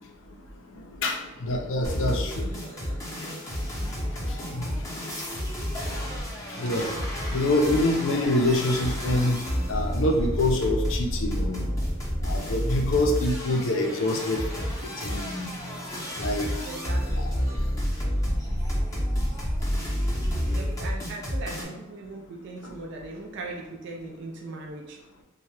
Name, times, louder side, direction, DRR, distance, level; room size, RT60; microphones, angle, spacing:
voice 1, 1.0-2.5 4.5-4.6 6.6-6.9 7.3-9.4 9.7-11.6 12.2-14.7 15.0-15.6 16.2-16.5, left 1 dB, 60° left, 2 dB, 0.4 m, -25 dB
Inspirational Loop, 1.8-21.6, equal, 15° left, 0.6 m, -30 dB
voice 2, 16.7-17.3 20.5-25.0, right 2 dB, 55° right, 0 dB, 0.3 m, -39 dB
2.7 x 2.2 x 3.1 m, 0.98 s
head